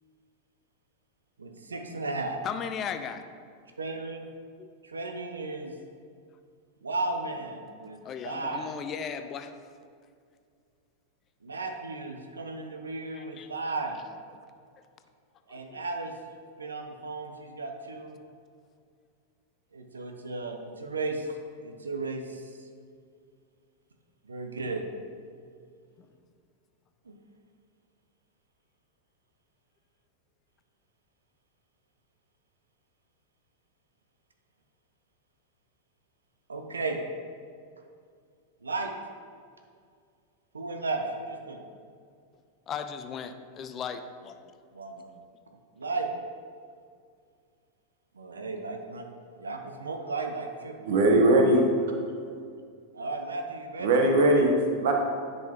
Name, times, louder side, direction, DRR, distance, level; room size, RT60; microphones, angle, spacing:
voice 1, 1.4-2.4 3.8-4.3 4.8-5.7 6.8-8.0 8.2-8.7 11.4-14.0 15.5-16.1 16.6-18.1 19.7-21.3 21.6-22.4 24.3-24.8 27.1-27.2 36.5-37.0 38.6-38.9 40.5-41.6 44.7-45.0 45.8-46.1 48.1-49.1 49.4-50.7 52.9-53.9, right 3 dB, 75° right, 4 dB, 0.6 m, -34 dB
voice 2, 2.4-3.2 4.6-4.7 7.7-9.5 13.1-13.5 15.5-15.8 26.0-26.1 42.7-44.4, left 7 dB, 30° left, 9 dB, 0.4 m, -37 dB
voice 3, 50.8-51.6 53.8-54.9, right 1 dB, 55° right, 2 dB, 1.1 m, -20 dB
10.0 x 5.5 x 2.9 m, 2.2 s
figure-of-eight pair, 90°, 0 cm